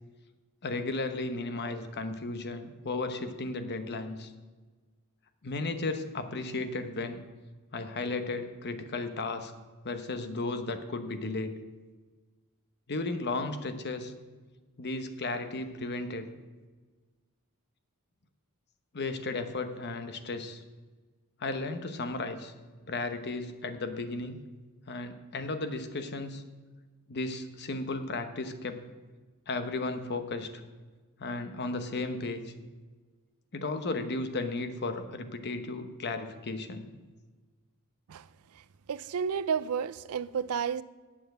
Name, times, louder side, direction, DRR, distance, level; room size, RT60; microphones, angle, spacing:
voice 1, 0.6-4.3 5.4-7.2 7.7-9.5 9.8-11.5 12.9-14.1 14.8-16.3 18.9-20.6 21.4-22.5 22.8-24.4 24.9-26.4 27.1-28.8 29.5-30.6 31.2-32.5 33.5-36.9, left 3 dB, 50° left, 1.0 m, -34 dB
voice 2, 38.9-40.8, right 7 dB, 75° right, 0.4 m, -31 dB
8.9 x 7.2 x 7.9 m
head